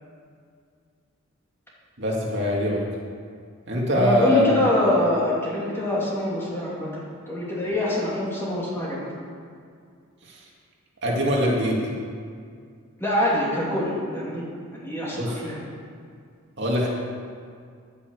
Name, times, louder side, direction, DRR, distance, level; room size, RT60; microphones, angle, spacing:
voice 1, 2.0-2.8 3.7-4.4 10.3-10.4 11.0-11.8 15.1-15.4 16.6-16.9, equal, 55° right, -3 dB, 2.5 m, -22 dB
voice 2, 3.9-9.0 13.0-15.6, left 1 dB, 10° left, -6 dB, 2.9 m, -25 dB
10.5 x 9.6 x 8.0 m, 2.2 s
head